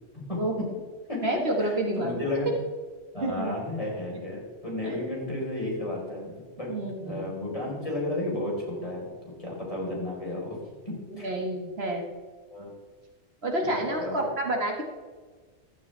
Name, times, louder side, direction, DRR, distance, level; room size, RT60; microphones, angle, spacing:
voice 1, 0.1-0.7 1.1-1.2 1.6-2.5 3.1-6.7 7.0-10.6 10.9-11.3 12.5-12.7 13.6-13.7 14.0-14.2, left 1 dB, 30° left, -4 dB, 4.6 m, -33 dB
voice 2, 1.2-2.4 3.2-3.5 4.8-5.0 6.7-7.2 11.1-12.1 13.4-14.8, right 1 dB, 65° right, 1 dB, 2.2 m, -29 dB
15.0 x 13.5 x 3.4 m, 1.5 s
omnidirectional pair, 1.1 m